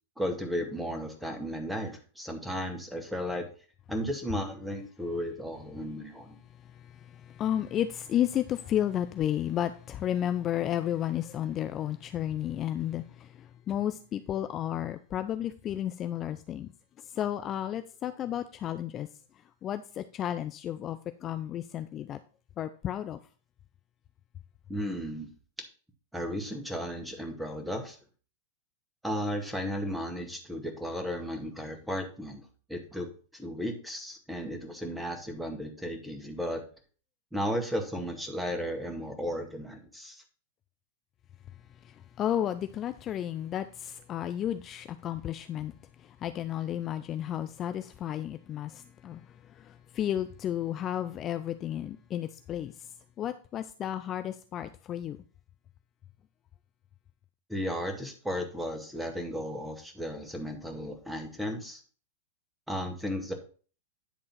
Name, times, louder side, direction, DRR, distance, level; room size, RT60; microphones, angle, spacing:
voice 1, 0.2-3.5 3.9-6.4 24.7-25.3 26.1-28.0 29.0-33.1 33.3-36.6 37.3-40.2 57.5-61.8 62.7-63.3, equal, 5° right, 1.9 m, -34 dB
voice 2, 6.8-16.7 17.1-19.1 19.6-22.2 22.6-23.2 41.8-45.7 46.0-49.2 49.5-52.7 53.2-55.2, left 11 dB, 30° left, 0.5 m, -32 dB
10.5 x 3.7 x 5.8 m
hypercardioid pair, 100°, 0 cm